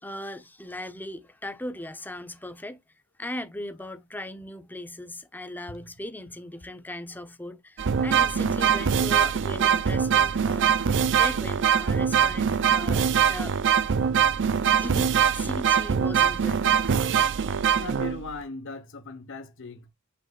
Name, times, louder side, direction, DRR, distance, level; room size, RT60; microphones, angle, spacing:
voice 1, 0.0-2.8 3.2-13.6 14.8-17.0, left 1 dB, 10° left, 0.9 m, -38 dB
sound 1, 7.8-18.4, right 7 dB, 55° right, 0.6 m, -23 dB
voice 2, 17.8-19.9, left 3 dB, 60° left, 1.2 m, -39 dB
8.9 x 5.4 x 2.5 m
head